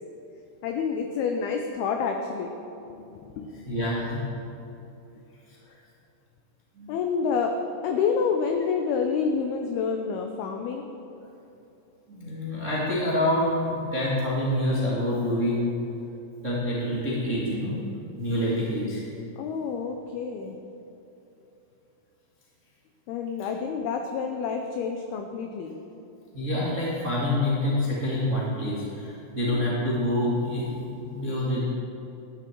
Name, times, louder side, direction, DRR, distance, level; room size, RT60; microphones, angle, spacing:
voice 1, 0.6-2.6 2.9-4.0 6.9-7.6 7.8-10.9 19.4-20.6 23.1-25.8, left 5 dB, 85° left, 4 dB, 2.2 m, -28 dB
voice 2, 3.6-4.3 6.7-6.9 12.1-15.7 16.4-17.8 18.2-19.0 26.3-31.6, left 1 dB, 45° right, -7 dB, 0.9 m, -27 dB
13.0 x 10.5 x 4.5 m, 3.0 s
omnidirectional pair, 5.3 m